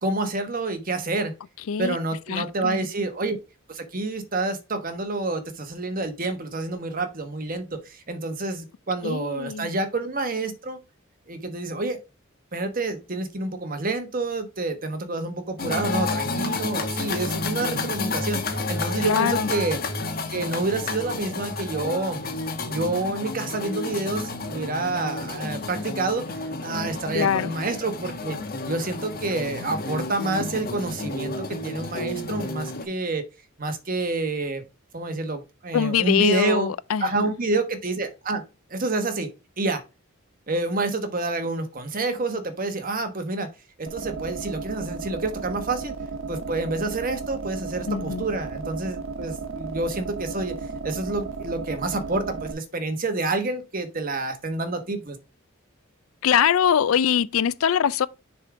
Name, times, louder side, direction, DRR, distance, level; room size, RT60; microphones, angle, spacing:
voice 1, 0.0-1.3 1.8-3.4 3.7-10.8 11.3-12.0 12.5-19.8 20.3-22.2 22.6-28.4 28.7-33.2 33.6-34.6 34.9-36.7 37.0-38.4 38.7-39.3 39.6-39.8 40.5-43.5 43.8-46.0 46.3-50.6 50.8-55.2, right 2 dB, 45° right, 1.2 m, -28 dB
voice 2, 2.3-2.9 9.0-9.7 19.0-19.5 27.1-27.5 35.7-37.3 47.9-48.2 56.2-58.1, left 8 dB, 90° left, 0.4 m, -23 dB
sound 1, 15.6-32.8, left 3 dB, 45° left, 1.3 m, -31 dB
sound 2, 43.9-52.5, right 4 dB, 75° right, 0.9 m, -34 dB
6.7 x 3.6 x 4.7 m
head